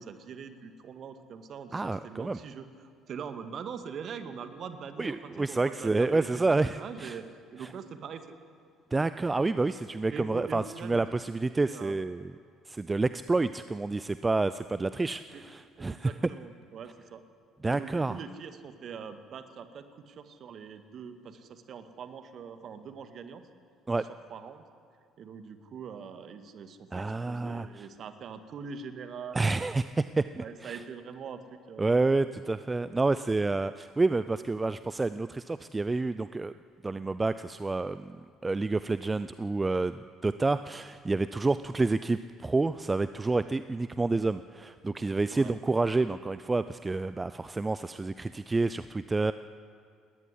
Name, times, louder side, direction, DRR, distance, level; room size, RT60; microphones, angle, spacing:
voice 1, 0.0-2.6 3.1-6.4 6.8-7.2 7.5-8.2 10.1-11.0 11.6-12.0 15.3-15.4 15.9-17.2 17.7-23.4 24.3-24.7 25.2-29.7 30.4-31.9 45.3-45.5, right 6 dB, 45° right, 9 dB, 1.9 m, -43 dB
voice 2, 1.7-2.4 5.0-7.2 7.6-7.7 8.9-12.3 12.7-16.1 17.6-18.2 23.9-24.0 26.9-27.9 29.3-30.8 31.8-36.5 36.8-38.2 38.4-49.3, right 3 dB, 20° right, 14 dB, 0.5 m, -29 dB
19.5 x 18.0 x 9.9 m, 2.4 s
figure-of-eight pair, 55°, 0 cm